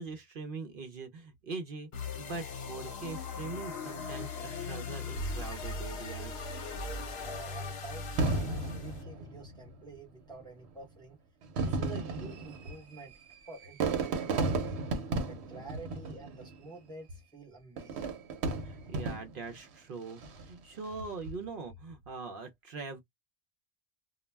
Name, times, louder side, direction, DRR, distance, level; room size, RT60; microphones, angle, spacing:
voice 1, 0.0-6.4 18.6-23.0, right 4 dB, 60° right, 0.7 m, -42 dB
sound 1, 1.9-9.0, left 3 dB, 70° left, 0.9 m, -39 dB
voice 2, 7.2-11.2 11.6-13.1 13.5-14.8 15.2-18.1, right 3 dB, 5° left, 0.7 m, -49 dB
Fireworks, 8.2-9.8 10.6-10.7 11.4-16.7 17.8-19.5 20.1-20.6, right 3 dB, 90° right, 0.9 m, -34 dB
2.2 x 2.0 x 3.2 m
omnidirectional pair, 1.1 m